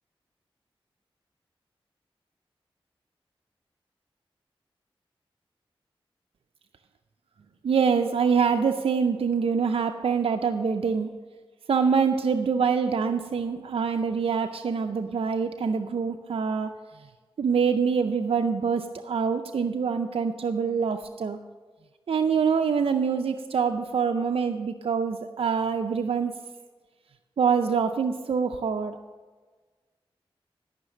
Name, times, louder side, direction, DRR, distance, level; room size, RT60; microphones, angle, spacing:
voice 1, 7.6-11.1 11.7-16.7 17.4-21.4 22.1-26.3 27.4-29.0, right 6 dB, 75° right, 6 dB, 0.5 m, -25 dB
13.0 x 5.8 x 6.4 m, 1.4 s
cardioid pair, 40°, 10 cm